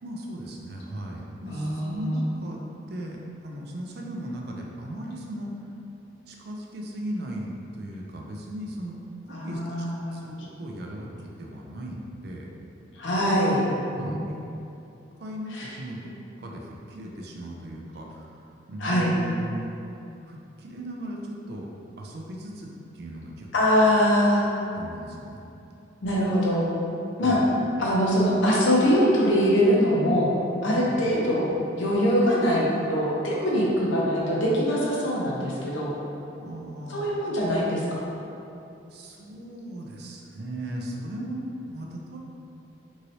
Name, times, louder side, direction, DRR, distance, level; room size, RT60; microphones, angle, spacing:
voice 1, 0.0-2.6 2.9-5.5 6.3-9.0 9.2-12.5 14.0-14.4 15.2-19.7 20.2-21.7 22.0-22.7 22.9-23.5 24.4-24.5 24.7-25.4 27.2-27.4 30.7-30.9 36.4-37.1 38.9-42.2, right 1 dB, 55° right, -1 dB, 0.4 m, -37 dB
voice 2, 1.5-2.2 9.3-10.3 12.9-13.7 14.0-14.2 15.5-15.7 18.8-19.1 23.5-24.4 26.0-26.7 27.2-27.4 27.8-30.3 30.6-31.5 31.8-36.0 36.9-38.0, equal, 80° left, -4 dB, 0.6 m, -23 dB
3.1 x 2.7 x 2.7 m, 2.8 s
head